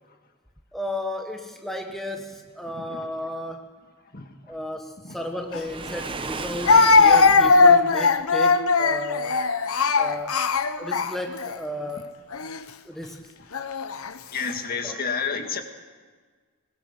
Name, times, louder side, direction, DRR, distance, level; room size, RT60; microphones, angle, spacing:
voice 1, 0.7-3.7 4.5-9.5 10.0-10.4 10.8-12.1 12.8-13.3 14.8-15.0, left 1 dB, ahead, 3 dB, 1.3 m, -33 dB
Speech, 5.5-5.6 6.7-11.5 12.3-12.6 13.5-14.1, left 4 dB, 80° left, 0.9 m, -19 dB
Waves surf, 5.5-7.6, right 3 dB, 25° right, 0.9 m, -35 dB
voice 2, 14.3-15.6, left 5 dB, 45° left, 5 dB, 1.9 m, -29 dB
22.0 x 20.5 x 6.7 m, 1.5 s
head